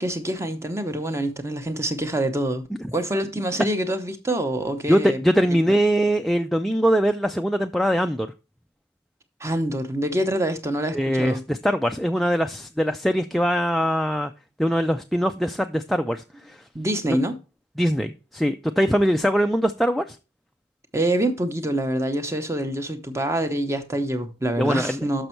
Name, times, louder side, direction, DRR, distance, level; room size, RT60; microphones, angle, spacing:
voice 1, 0.0-5.2 9.4-11.4 16.7-17.3 20.9-25.3, right 1 dB, 15° right, 0.7 m, -26 dB
voice 2, 4.9-8.3 10.9-14.3 14.6-16.6 17.8-20.2 24.6-25.0, equal, ahead, 0.3 m, -22 dB
6.7 x 6.1 x 4.4 m
head